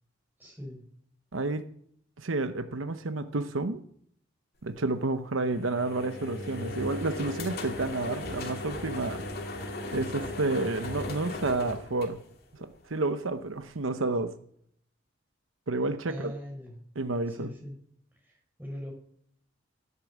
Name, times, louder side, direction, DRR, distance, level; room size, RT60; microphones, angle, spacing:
voice 1, 0.4-0.8 16.0-16.7 17.3-17.8 18.2-18.9, equal, 10° right, 0 dB, 5.5 m, -41 dB
voice 2, 1.3-1.6 2.2-3.8 4.6-9.2 9.9-12.2 12.6-14.3 15.7-16.3 17.0-17.5, right 2 dB, 85° right, 10 dB, 0.9 m, -30 dB
sound 1, 5.4-12.7, left 2 dB, 50° left, 2.4 m, -37 dB
16.0 x 8.6 x 7.3 m, 0.65 s
head